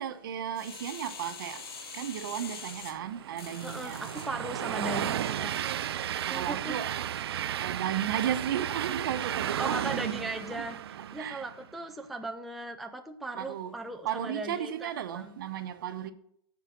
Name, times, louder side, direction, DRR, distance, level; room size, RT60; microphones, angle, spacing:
voice 1, 0.0-1.7 1.9-4.1 6.2-6.9 7.6-9.9 11.2-11.4 13.3-13.7 14.0-16.1, right 10 dB, 60° right, 1.0 m, -34 dB
sound 1, 0.5-4.3 4.9-5.0, left 6 dB, 70° left, 2.0 m, -44 dB
Train, 2.2-11.7, right 10 dB, 75° right, 0.5 m, -34 dB
voice 2, 3.6-5.6 6.2-6.8 9.6-10.8 11.1-15.4, right 2 dB, ahead, 0.3 m, -38 dB
14.5 x 4.9 x 6.0 m
hypercardioid pair, 155°, 13 cm